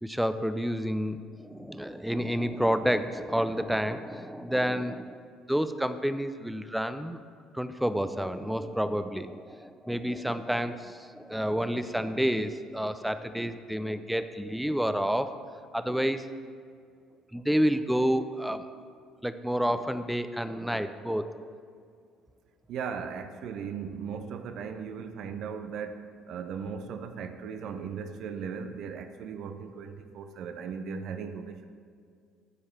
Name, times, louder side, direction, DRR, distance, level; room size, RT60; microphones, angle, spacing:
voice 1, 0.0-5.2 5.5-7.2 7.5-15.3 15.7-16.3 17.3-18.7 19.2-21.4, equal, 5° right, 11 dB, 0.5 m, -29 dB
voice 2, 22.7-31.7, right 6 dB, 60° right, 8 dB, 0.5 m, -37 dB
13.5 x 4.8 x 4.4 m, 2.2 s
hypercardioid pair, 55°, 0 cm